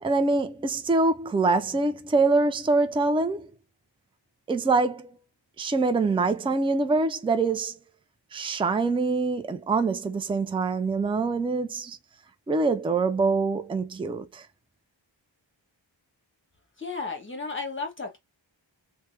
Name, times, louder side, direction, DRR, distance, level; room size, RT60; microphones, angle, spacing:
voice 1, 0.0-3.5 4.5-5.1 5.6-7.8 8.3-12.0 12.5-14.5, right 3 dB, 10° right, 0.4 m, -24 dB
voice 2, 16.8-18.2, left 4 dB, 25° left, 1.1 m, -33 dB
3.3 x 2.1 x 3.2 m
wide cardioid pair, 70°, 47 cm